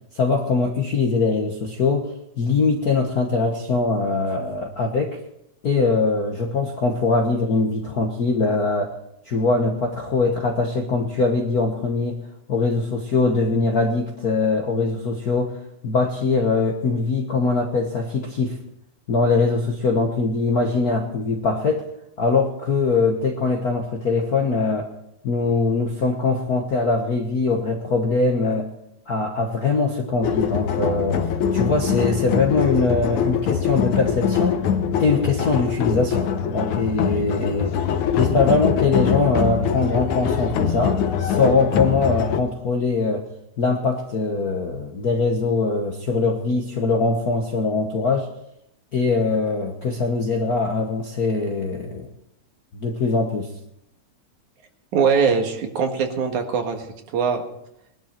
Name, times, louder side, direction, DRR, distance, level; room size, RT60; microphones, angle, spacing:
voice 1, 0.1-5.2 5.6-8.9 9.3-12.2 12.5-18.6 19.1-21.8 22.2-24.9 25.2-28.7 29.1-34.6 35.0-43.3 43.6-48.3 48.9-52.1 52.7-53.5, left 3 dB, 60° left, 2 dB, 1.0 m, -22 dB
sound 1, 30.2-42.4, left 7 dB, 85° left, 2.3 m, -23 dB
voice 2, 54.9-56.8 57.1-57.4, right 6 dB, 85° right, 4 dB, 3.1 m, -21 dB
20.5 x 11.5 x 4.5 m, 0.79 s
omnidirectional pair, 3.3 m